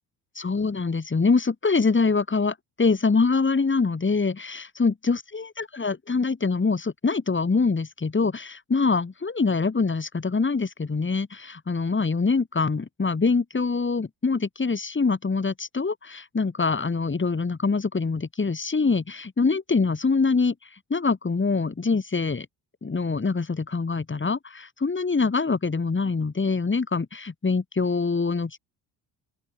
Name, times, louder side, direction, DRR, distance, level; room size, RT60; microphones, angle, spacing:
voice 1, 0.3-20.5 20.9-22.5 22.8-28.6, left 4 dB, 25° left, 2.9 m, -24 dB
open air
hypercardioid pair, 50°, 49 cm